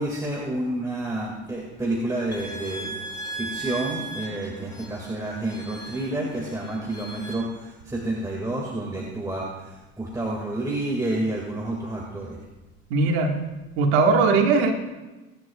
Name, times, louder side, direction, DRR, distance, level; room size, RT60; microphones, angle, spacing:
voice 1, 0.0-2.9 3.4-9.5 10.0-12.4, right 1 dB, 10° right, -3 dB, 2.1 m, -29 dB
sound 1, 2.3-7.3, right 2 dB, 10° left, 3.1 m, -37 dB
voice 2, 12.9-13.3 13.8-14.7, right 4 dB, 90° right, 2 dB, 1.8 m, -19 dB
20.0 x 10.5 x 2.4 m, 1.1 s
supercardioid pair, 95°, 32 cm